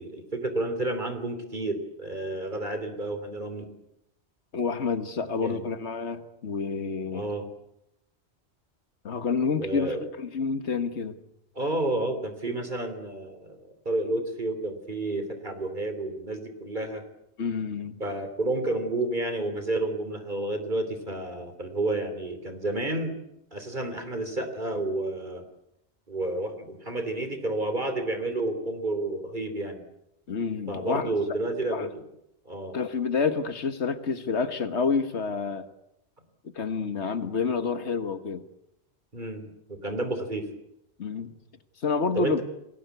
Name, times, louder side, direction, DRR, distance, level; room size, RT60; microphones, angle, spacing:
voice 1, 0.0-3.6 5.4-5.6 7.1-7.5 9.6-10.0 11.5-13.6 13.8-17.0 18.0-23.1 23.5-25.4 26.1-29.8 30.7-31.9 32.4-32.8 39.1-40.5 42.1-42.4, right 2 dB, 45° right, 3.3 m, -30 dB
voice 2, 4.5-7.3 9.0-11.2 17.4-18.0 30.3-31.1 31.7-31.9 32.7-35.7 36.6-38.4 41.0-41.3 41.8-42.4, left 5 dB, 80° left, 1.8 m, -28 dB
29.5 x 20.5 x 8.2 m
omnidirectional pair, 1.2 m